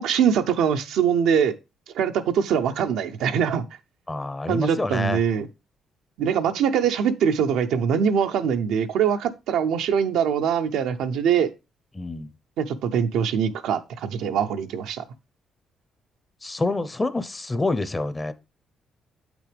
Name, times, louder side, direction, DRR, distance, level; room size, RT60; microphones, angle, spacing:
voice 1, 0.0-1.5 1.9-3.6 4.5-5.5 6.2-11.5 12.6-15.0, right 7 dB, 85° right, 0.7 m, -23 dB
voice 2, 4.1-5.2 11.9-12.3 16.4-18.3, left 2 dB, 20° left, 0.7 m, -27 dB
7.9 x 6.1 x 3.4 m
cardioid pair, 90°, 0 cm